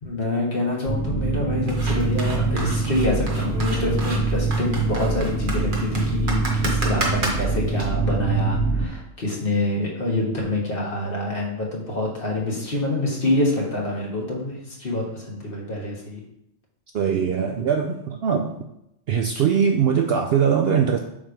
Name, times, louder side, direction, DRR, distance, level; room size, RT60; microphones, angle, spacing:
voice 1, 0.0-16.2, left 1 dB, 45° left, -3 dB, 1.6 m, -26 dB
sound 1, 0.8-8.9, right 3 dB, 75° left, 2.7 m, -24 dB
sound 2, 1.7-7.8, right 2 dB, 40° right, 1.2 m, -31 dB
voice 2, 16.9-18.6 19.1-21.0, right 7 dB, 65° right, 3 dB, 0.6 m, -21 dB
7.2 x 3.2 x 5.0 m, 0.81 s
omnidirectional pair, 1.4 m